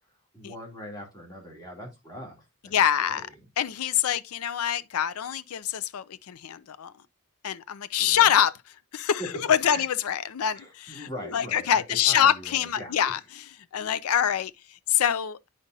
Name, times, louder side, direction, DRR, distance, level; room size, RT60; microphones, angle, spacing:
voice 1, 0.3-2.7 3.0-3.3 8.0-8.3 9.2-9.3 9.6-9.9 10.5-12.9, equal, 15° left, 2.8 m, -41 dB
voice 2, 2.7-3.3 3.6-6.9 7.4-8.6 8.9-9.2 9.5-13.4 13.7-15.5, left 9 dB, 75° left, 0.4 m, -25 dB
9.7 x 5.0 x 2.6 m
head